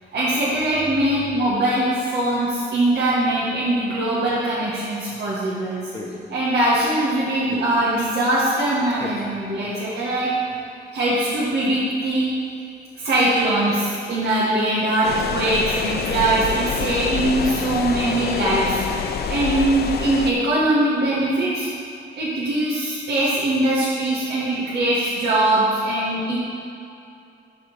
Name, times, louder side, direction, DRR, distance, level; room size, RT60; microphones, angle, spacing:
voice 1, 0.1-5.9 6.3-10.3 10.9-12.3 13.0-18.8 19.3-21.7 22.1-26.4, right 1 dB, 55° right, -8 dB, 1.9 m, -21 dB
sound 1, 5.9-6.3 7.5-7.8 8.9-9.4 11.0-12.2 12.6-12.7 12.9-14.2 14.5-14.8 15.4-15.5 15.8-16.2 16.5-16.6 17.4-17.8, left 1 dB, 20° left, 1.4 m, -39 dB
sound 2, 15.0-20.3, left 7 dB, 55° left, 0.6 m, -27 dB
11.5 x 4.4 x 5.5 m, 2.6 s
cardioid pair, 90°, 20 cm